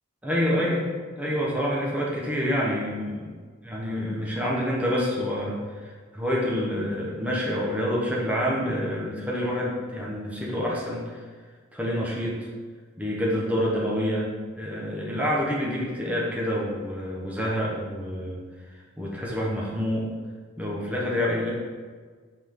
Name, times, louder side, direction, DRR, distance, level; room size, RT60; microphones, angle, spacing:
voice 1, 0.2-0.8 1.2-3.3 3.6-5.6 6.1-11.1 11.7-12.4 13.0-14.3 14.6-18.4 19.0-20.1 20.6-21.5, equal, 5° right, -5 dB, 1.0 m, -27 dB
5.7 x 4.8 x 3.7 m, 1.5 s
head